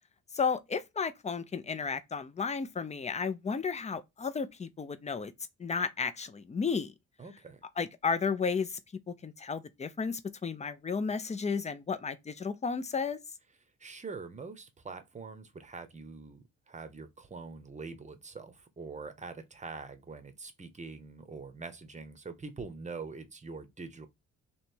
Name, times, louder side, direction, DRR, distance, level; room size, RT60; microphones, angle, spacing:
voice 1, 0.3-5.3 5.6-6.9 7.8-8.8 9.1-13.2, left 5 dB, 20° left, 0.5 m, -33 dB
voice 2, 7.2-7.6 13.8-24.1, right 4 dB, 25° right, 0.8 m, -44 dB
3.2 x 2.9 x 4.4 m
cardioid pair, 90°, 30 cm